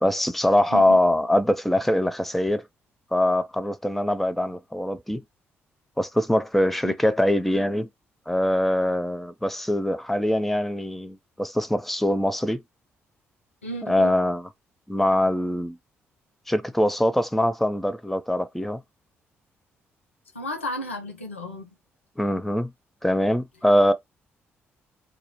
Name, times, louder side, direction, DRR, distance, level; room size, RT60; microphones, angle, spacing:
voice 1, 0.0-2.6 3.1-5.2 6.0-7.9 8.3-12.6 13.8-14.5 14.9-15.8 16.5-18.8 22.2-22.7 23.0-23.9, left 1 dB, 5° left, 0.4 m, -23 dB
voice 2, 13.6-14.1 20.3-21.7, equal, 90° left, 0.4 m, -33 dB
2.4 x 2.0 x 2.8 m
figure-of-eight pair, 40°, 7 cm